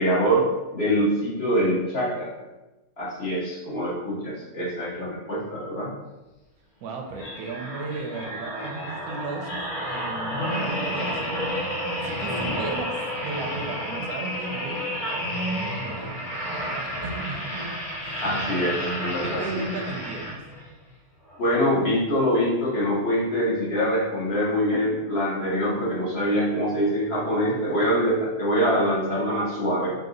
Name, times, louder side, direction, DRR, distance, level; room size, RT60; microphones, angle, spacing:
voice 1, 0.0-2.3 3.0-5.9 18.2-19.6 21.4-29.9, equal, 45° left, -7 dB, 1.4 m, -24 dB
voice 2, 6.8-11.5 12.0-17.5 18.0-18.4 19.2-20.4, right 3 dB, 80° right, 2 dB, 1.1 m, -35 dB
sound 1, 7.1-20.7 21.3-21.5, equal, 75° left, 1.4 m, -31 dB
4.1 x 2.4 x 3.8 m, 1.1 s
omnidirectional pair, 1.6 m